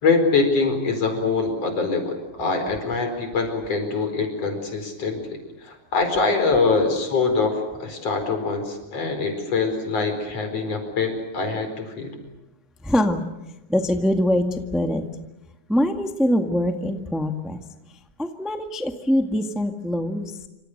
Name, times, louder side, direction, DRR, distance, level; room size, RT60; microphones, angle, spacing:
voice 1, 0.0-12.2, left 4 dB, 45° left, 6 dB, 5.6 m, -24 dB
voice 2, 12.8-13.2 13.7-15.0 15.7-17.6 17.9-20.4, left 1 dB, ahead, 5 dB, 0.5 m, -23 dB
28.0 x 26.0 x 6.7 m, 0.94 s
omnidirectional pair, 3.8 m